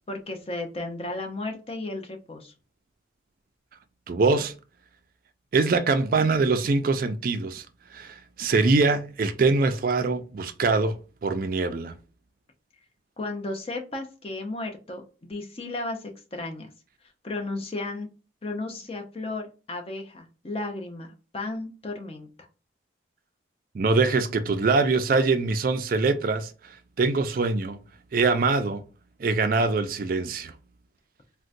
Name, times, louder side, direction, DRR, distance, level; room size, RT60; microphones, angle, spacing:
voice 1, 0.1-2.5 13.2-16.7 17.2-18.1 18.4-22.3, left 2 dB, 30° left, 0.6 m, -34 dB
voice 2, 4.1-4.5 5.5-7.7 7.9-11.0 11.2-11.9 23.7-26.7 27.0-27.8 28.1-28.8 29.2-30.5, right 3 dB, 50° right, 0.4 m, -23 dB
3.7 x 2.2 x 2.5 m
head